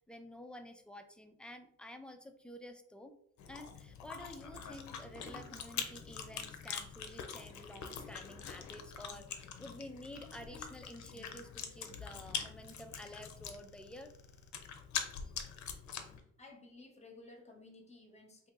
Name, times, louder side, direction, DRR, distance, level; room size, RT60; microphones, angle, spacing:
voice 1, 0.1-3.1 3.5-14.1, equal, 5° left, 6 dB, 0.4 m, -50 dB
Chewing mastication, 3.4-16.2, left 7 dB, 70° left, 0.6 m, -44 dB
voice 2, 16.4-18.5, left 2 dB, 20° left, 3 dB, 0.9 m, -55 dB
2.8 x 2.7 x 3.7 m, 0.68 s
cardioid pair, 90°, 30 cm